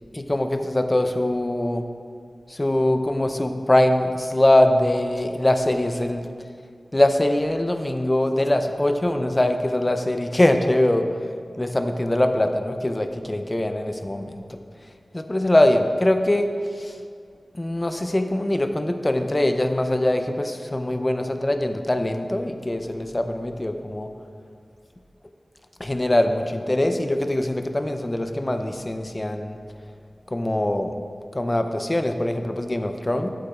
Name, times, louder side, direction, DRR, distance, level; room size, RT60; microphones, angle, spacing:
voice 1, 0.1-1.8 2.5-6.3 6.9-11.1 11.6-14.6 15.1-16.5 16.8-17.0 17.5-24.1 25.8-29.6 30.3-31.0 31.3-33.3, left 1 dB, 25° left, 7 dB, 0.5 m, -22 dB
12.0 x 8.0 x 2.4 m, 2.3 s
wide cardioid pair, 70°, 0 cm